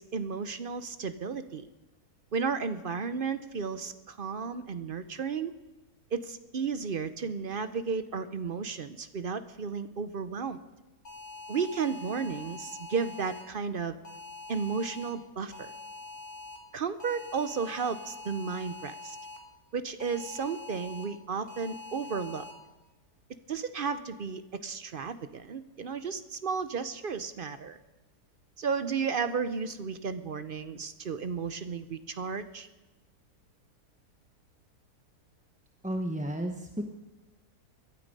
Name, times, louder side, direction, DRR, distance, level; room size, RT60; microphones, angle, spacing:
voice 1, 0.0-1.6 2.3-5.5 6.1-10.6 11.5-14.0 14.5-15.7 16.7-19.2 19.7-22.4 23.5-27.8 28.6-32.7, right 5 dB, 50° right, 11 dB, 0.6 m, -33 dB
sound 1, 11.0-13.4 14.0-15.1 15.5-16.6 17.0-19.4 20.0-21.0 21.5-22.5, left 3 dB, 65° left, 2.7 m, -44 dB
voice 2, 35.8-36.9, right 1 dB, 5° right, 3 dB, 0.7 m, -32 dB
22.0 x 12.5 x 5.3 m, 1.1 s
omnidirectional pair, 1.7 m